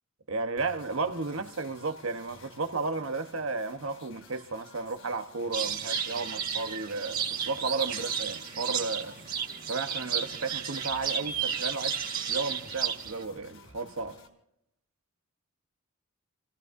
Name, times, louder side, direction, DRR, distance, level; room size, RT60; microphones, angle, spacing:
voice 1, 0.3-9.2 9.7-14.2, right 3 dB, 65° right, 1.1 m, -33 dB
sound 1, 0.6-14.3, left 4 dB, 70° left, 4.1 m, -54 dB
sound 2, 5.5-13.2, right 7 dB, 45° right, 2.8 m, -33 dB
29.0 x 18.0 x 2.7 m
head